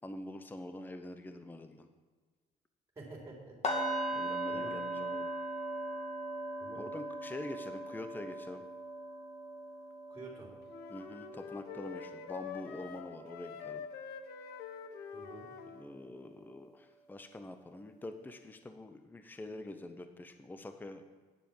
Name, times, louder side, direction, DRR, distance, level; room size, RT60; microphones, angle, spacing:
voice 1, 0.0-1.9 4.1-5.3 6.8-8.6 10.9-13.8 15.7-21.0, left 1 dB, 10° left, 8 dB, 0.7 m, -45 dB
voice 2, 3.0-3.6 4.5-4.8 6.6-6.9 10.1-10.5 15.1-15.5, right 2 dB, 15° right, -2 dB, 3.6 m, -48 dB
sound 1, 3.6-13.6 13.9-14.2 14.6-14.8, right 1 dB, 40° left, 2.2 m, -40 dB
sound 2, 10.7-15.9, left 7 dB, 70° left, 1.0 m, -46 dB
9.5 x 7.4 x 7.1 m, 1.4 s
cardioid pair, 110°, 17 cm